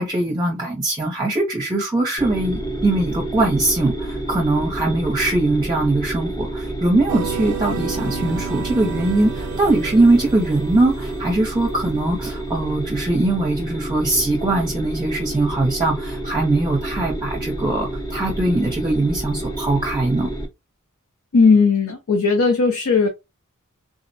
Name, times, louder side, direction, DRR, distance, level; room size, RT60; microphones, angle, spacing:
voice 1, 0.0-20.3, right 2 dB, 20° right, 0.6 m, -21 dB
sound 1, 2.2-20.5, right 1 dB, 15° left, 0.7 m, -29 dB
sound 2, 7.1-11.3, right 8 dB, 85° right, 0.4 m, -32 dB
voice 2, 21.3-23.1, left 4 dB, 70° left, 0.6 m, -16 dB
3.6 x 2.1 x 2.6 m
head